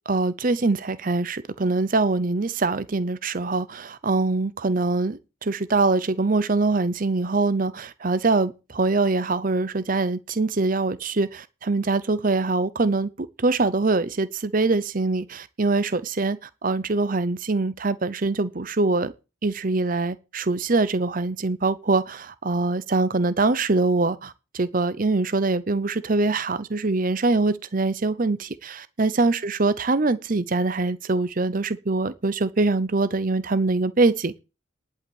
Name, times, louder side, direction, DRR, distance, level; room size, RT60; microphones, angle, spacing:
voice 1, 0.1-19.1 19.4-34.4, right 3 dB, 40° right, 0.7 m, -23 dB
11.0 x 5.7 x 8.7 m
head